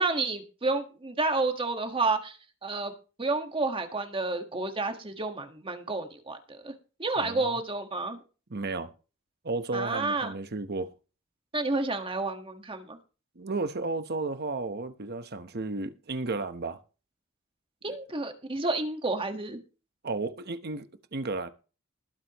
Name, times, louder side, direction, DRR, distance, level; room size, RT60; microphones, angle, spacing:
voice 1, 0.0-2.4 2.6-2.9 3.2-6.7 7.0-8.2 9.7-10.3 11.5-13.0 17.8-19.6, right 3 dB, 25° right, 1.6 m, -30 dB
voice 2, 7.2-7.5 8.5-8.9 9.4-10.9 13.4-16.8 17.9-18.0 20.0-21.5, right 3 dB, 50° right, 1.1 m, -33 dB
20.5 x 8.1 x 3.1 m
head